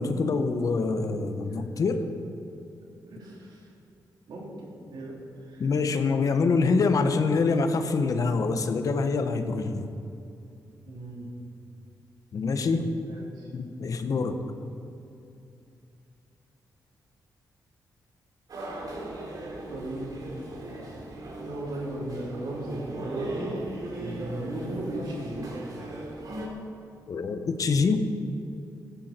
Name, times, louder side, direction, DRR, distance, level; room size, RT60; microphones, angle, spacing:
voice 1, 0.0-2.0 5.6-9.9 12.3-12.9 13.5-14.4 27.1-28.1, left 4 dB, 55° left, 8 dB, 1.1 m, -25 dB
voice 2, 3.1-3.7 4.3-5.2 5.4-6.0 10.9-11.3 13.1-13.5 19.7-20.2 21.4-23.6 24.0-25.5, right 1 dB, 85° right, -3 dB, 3.7 m, -37 dB
sound 1, 18.5-26.5, right 2 dB, 60° right, 3.0 m, -38 dB
16.5 x 13.5 x 4.5 m, 2.6 s
cardioid pair, 110°, 7 cm